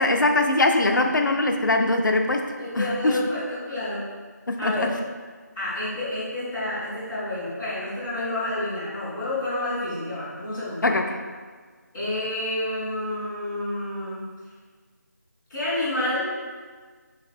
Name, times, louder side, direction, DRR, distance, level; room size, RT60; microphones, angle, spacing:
voice 1, 0.0-2.4 2.7-3.2 4.5-4.9 10.8-11.2, left 2 dB, 85° left, 4 dB, 0.5 m, -22 dB
voice 2, 2.6-4.1 4.6-4.9 5.5-10.9 11.9-14.3 15.5-16.3, left 1 dB, ahead, -19 dB, 0.3 m, -29 dB
3.2 x 2.5 x 4.0 m, 1.5 s
figure-of-eight pair, 165°, 10 cm